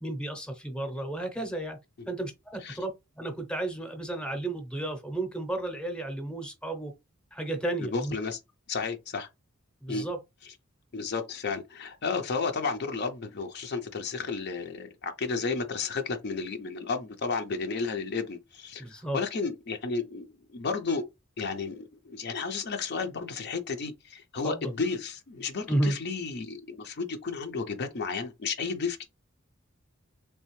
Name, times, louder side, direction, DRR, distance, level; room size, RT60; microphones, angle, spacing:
voice 1, 0.0-1.8 2.1-6.9 7.3-8.1 9.8-10.2 18.8-19.2 24.4-24.7 25.7-26.0, right 1 dB, 5° left, 0.7 m, -32 dB
voice 2, 7.8-8.4 8.7-9.3 9.9-10.1 10.9-20.2 20.5-21.0 21.4-29.0, left 4 dB, 55° left, 0.5 m, -32 dB
3.4 x 3.2 x 3.0 m
head